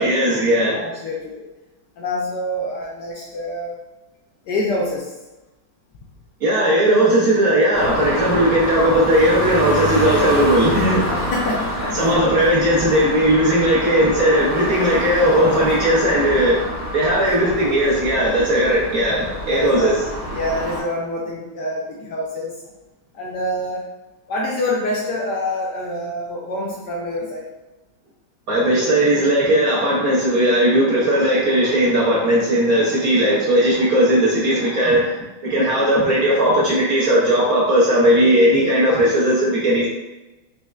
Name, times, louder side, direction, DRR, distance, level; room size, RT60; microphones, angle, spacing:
voice 1, 0.0-0.8 6.4-11.0 11.9-16.7 16.9-19.9 28.5-35.1 35.4-39.9, equal, 60° right, -6 dB, 1.0 m, -17 dB
voice 2, 0.8-1.4 2.0-3.8 4.4-5.1 11.1-12.3 19.3-19.9 20.3-22.5 23.1-23.8 24.3-27.5, left 1 dB, 70° left, -3 dB, 1.0 m, -26 dB
sound 1, 7.7-20.8, equal, 15° right, 0.9 m, -26 dB
4.3 x 3.2 x 2.4 m, 1.1 s
omnidirectional pair, 2.3 m